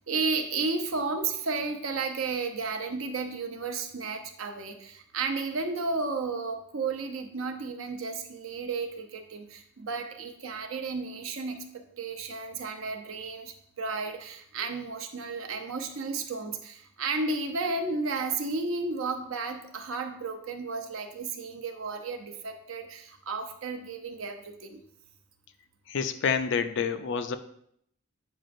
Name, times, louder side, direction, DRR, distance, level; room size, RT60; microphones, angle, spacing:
voice 1, 0.1-11.6 12.0-24.8, right 4 dB, 65° right, 4 dB, 0.7 m, -33 dB
voice 2, 25.9-27.4, left 6 dB, 60° left, 10 dB, 0.4 m, -28 dB
7.7 x 5.0 x 2.6 m, 0.69 s
head